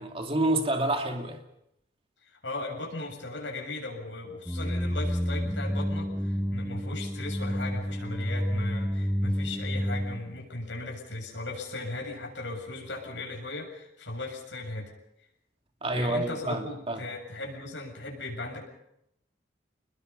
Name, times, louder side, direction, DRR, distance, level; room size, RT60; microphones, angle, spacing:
voice 1, 0.0-1.4 15.8-17.1, right 1 dB, 30° right, 3 dB, 2.6 m, -28 dB
voice 2, 2.4-14.9 15.9-18.6, left 2 dB, 80° left, 0 dB, 7.4 m, -37 dB
sound 1, 4.5-10.2, equal, ahead, 0.9 m, -30 dB
29.0 x 21.0 x 5.6 m, 0.79 s
head